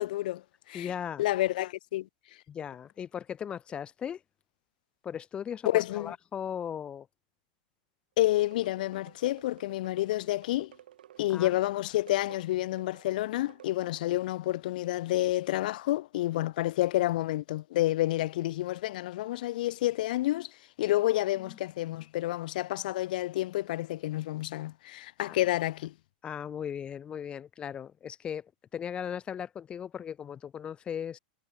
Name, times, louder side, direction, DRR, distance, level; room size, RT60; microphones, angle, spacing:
voice 1, 0.0-0.9 1.2-2.1 5.6-6.1 8.2-10.7 11.2-25.9, left 16 dB, 65° left, 0.9 m, -29 dB
voice 2, 0.7-1.2 2.5-4.2 5.0-7.1 11.3-11.5 21.4-21.6 25.3-25.4 26.2-31.2, left 8 dB, 20° left, 1.6 m, -37 dB
sound 1, 8.2-14.3, right 11 dB, 85° right, 2.5 m, -55 dB
supercardioid pair, 140°, 5 cm